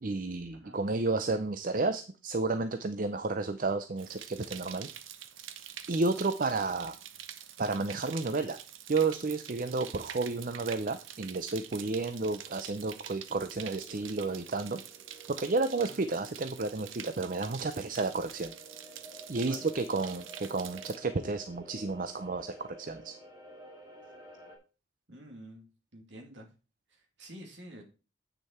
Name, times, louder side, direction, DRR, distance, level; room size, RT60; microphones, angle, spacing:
voice 1, 0.0-4.9 5.9-6.9 7.6-8.6 8.9-14.8 15.4-18.5 19.3-23.1, right 3 dB, 40° right, 9 dB, 0.5 m, -31 dB
sound 1, 4.0-21.0, right 10 dB, 75° right, 0.8 m, -46 dB
sound 2, 11.0-24.6, right 1 dB, 20° right, 2.9 m, -53 dB
voice 2, 25.1-25.7 25.9-26.5 26.9-27.8, right 1 dB, 60° right, 3 dB, 2.3 m, -49 dB
8.5 x 6.4 x 4.3 m, 0.34 s
head